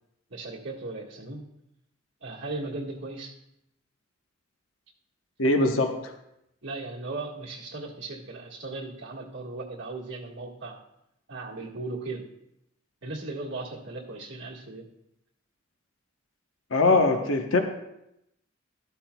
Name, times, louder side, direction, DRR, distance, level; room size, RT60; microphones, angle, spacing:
voice 1, 0.3-1.4 2.2-3.3 6.6-10.8 11.3-12.2 13.0-14.9, right 3 dB, 65° right, -4 dB, 1.7 m, -37 dB
voice 2, 5.4-6.1 16.7-17.6, left 2 dB, 80° left, 5 dB, 1.0 m, -22 dB
13.0 x 12.0 x 2.3 m, 0.83 s
head